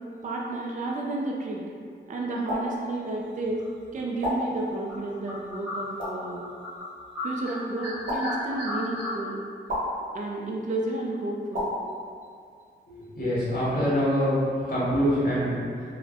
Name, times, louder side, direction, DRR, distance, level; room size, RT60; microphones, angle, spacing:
voice 1, 0.2-1.6 2.1-3.6 3.9-6.4 7.2-9.4 10.1-11.7, right 2 dB, 40° right, -2 dB, 0.4 m, -31 dB
sound 1, 2.5-2.6 4.2-4.3 6.0-6.1 8.0-8.2 9.7-9.8 11.5-11.7, equal, 80° right, 0.9 m, -29 dB
sound 2, 3.6-4.0 4.5-4.6 4.9-6.9 7.1-9.1, left 1 dB, ahead, 1.4 m, -34 dB
voice 2, 13.1-14.3 14.7-15.6, equal, 50° left, -10 dB, 1.2 m, -24 dB
2.5 x 2.1 x 2.4 m, 2.2 s
cardioid pair, 50°, 20 cm